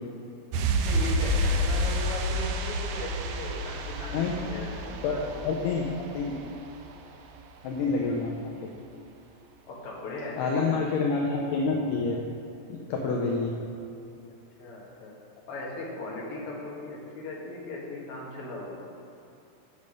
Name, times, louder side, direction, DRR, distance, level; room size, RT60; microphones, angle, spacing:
sound 1, 0.5-7.0 7.3-7.4, equal, 85° right, 1.7 m, -29 dB
voice 1, 0.8-5.5 8.0-8.2 9.7-10.8 14.6-15.2 15.5-18.8, left 2 dB, 50° left, -4 dB, 2.2 m, -38 dB
voice 2, 4.1-4.6 5.0-5.1 5.5-5.8 6.1-6.3 7.6-8.3 8.6-8.7 10.4-12.2 12.9-13.5, left 4 dB, 75° left, -1 dB, 2.1 m, -27 dB
8.0 x 7.2 x 5.2 m, 2.7 s
omnidirectional pair, 4.2 m